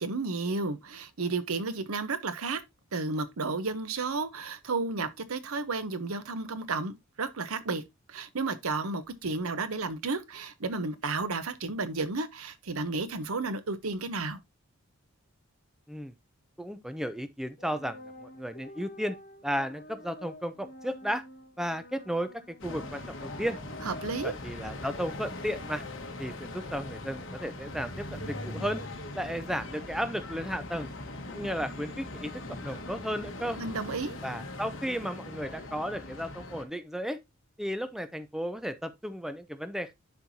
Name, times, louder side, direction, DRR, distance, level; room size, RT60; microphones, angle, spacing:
voice 1, 0.0-2.6 2.9-7.8 8.1-14.4 23.8-24.3 33.6-34.2, right 3 dB, 85° right, 0.9 m, -32 dB
voice 2, 16.6-19.2 19.4-21.2 21.6-23.6 24.2-25.8 26.2-28.8 29.1-30.9 31.3-32.3 32.6-33.6 34.2-37.2 37.6-39.9, equal, ahead, 0.5 m, -34 dB
sound 1, 17.6-24.3, left 1 dB, 40° left, 1.7 m, -48 dB
sound 2, 22.6-36.6, left 2 dB, 60° left, 1.5 m, -40 dB
11.0 x 4.5 x 2.7 m
head